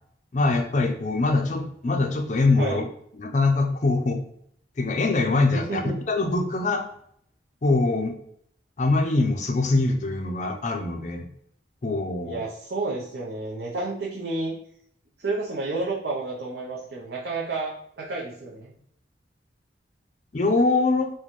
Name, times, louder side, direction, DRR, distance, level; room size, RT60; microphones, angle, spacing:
voice 1, 0.3-2.8 3.2-4.3 4.8-6.8 7.6-8.1 8.8-11.3 11.8-12.4 20.3-21.1, left 3 dB, 40° left, 4 dB, 0.4 m, -23 dB
voice 2, 5.5-6.0 12.2-14.5 15.2-18.7, right 3 dB, 60° right, -4 dB, 0.6 m, -30 dB
4.1 x 2.2 x 3.0 m, 0.68 s
head